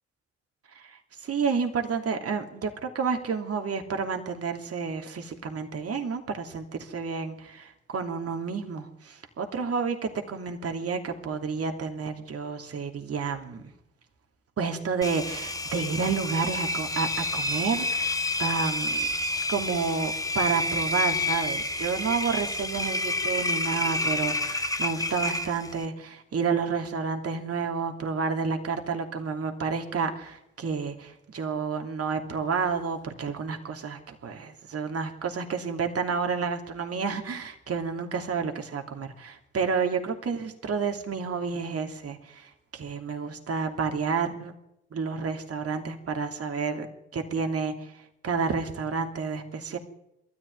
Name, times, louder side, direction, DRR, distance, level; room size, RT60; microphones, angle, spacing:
voice 1, 0.7-13.7 14.6-19.1 19.5-44.5 44.9-46.9 47.1-49.8, right 5 dB, 45° right, 4 dB, 2.9 m, -30 dB
Engine, 15.0-25.9, left 2 dB, 10° left, 1.6 m, -29 dB
22.5 x 14.0 x 9.5 m, 0.83 s
figure-of-eight pair, 40°, 33 cm